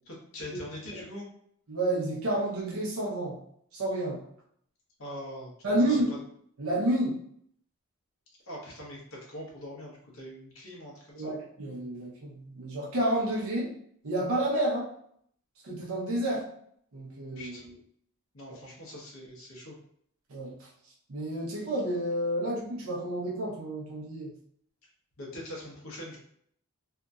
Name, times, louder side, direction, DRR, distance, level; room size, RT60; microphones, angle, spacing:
voice 1, 0.1-1.3 5.0-6.0 8.5-11.3 17.4-17.7 18.3-19.8 25.2-26.2, left 1 dB, 70° left, -3 dB, 1.0 m, -43 dB
voice 2, 1.7-3.4 3.7-4.2 5.6-6.1 6.6-7.2 11.1-13.7 14.0-14.9 15.6-16.5 16.9-17.7 20.3-20.5 21.1-24.3, right 1 dB, 70° right, -3 dB, 0.7 m, -30 dB
2.8 x 2.6 x 2.3 m, 0.67 s
head